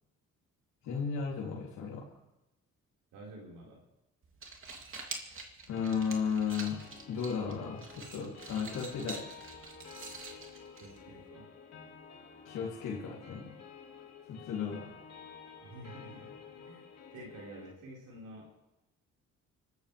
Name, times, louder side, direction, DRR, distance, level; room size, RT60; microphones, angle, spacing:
voice 1, 0.8-2.0 5.7-6.8 7.1-9.2 12.4-13.5 14.3-14.9, left 6 dB, 90° left, -5 dB, 3.3 m, -34 dB
voice 2, 3.1-3.8 10.7-11.5 15.6-18.5, right 1 dB, 90° right, -4 dB, 5.0 m, -50 dB
sound 1, 4.2-11.3, right 3 dB, 45° right, 2.9 m, -47 dB
sound 2, 5.7-17.7, left 6 dB, 55° left, 3.5 m, -51 dB
25.0 x 14.0 x 3.5 m, 0.94 s
cardioid pair, 90°, 30 cm